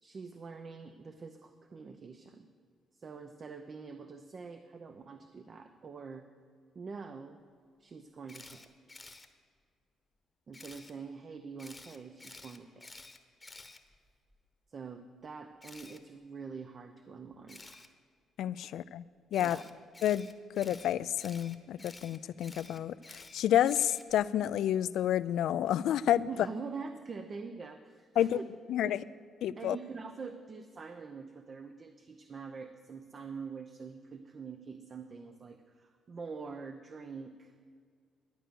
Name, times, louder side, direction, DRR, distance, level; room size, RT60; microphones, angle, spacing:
voice 1, 0.0-2.5 2.9-6.3 6.7-7.4 7.8-8.7 10.5-12.9 14.7-17.8 19.4-19.6 26.3-28.4 28.8-29.0 29.6-37.6, right 5 dB, 45° right, 7 dB, 0.7 m, -45 dB
Camera, 8.3-9.3 10.5-10.9 11.6-14.4 15.6-16.0 17.5-17.9 19.3-24.3, left 2 dB, 15° left, 1.0 m, -51 dB
voice 2, 18.4-19.0 19.3-19.6 20.0-20.3 20.5-26.3 28.2-28.4 28.7-29.0 29.4-29.8, left 11 dB, 80° left, 17 dB, 0.3 m, -29 dB
12.0 x 8.9 x 6.9 m, 2.1 s
cardioid pair, 90°, 0 cm